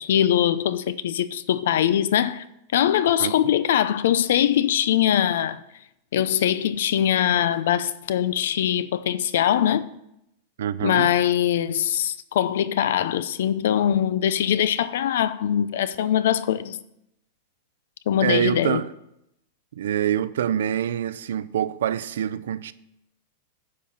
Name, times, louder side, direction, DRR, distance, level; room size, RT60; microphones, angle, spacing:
voice 1, 0.0-2.4 2.7-5.6 6.1-9.9 10.8-16.8 18.1-18.8, left 10 dB, 65° left, 0.6 m, -22 dB
voice 2, 10.6-11.1 18.2-18.9 19.8-22.7, right 10 dB, 85° right, 0.5 m, -25 dB
10.5 x 5.7 x 7.2 m
supercardioid pair, 180°, 0 cm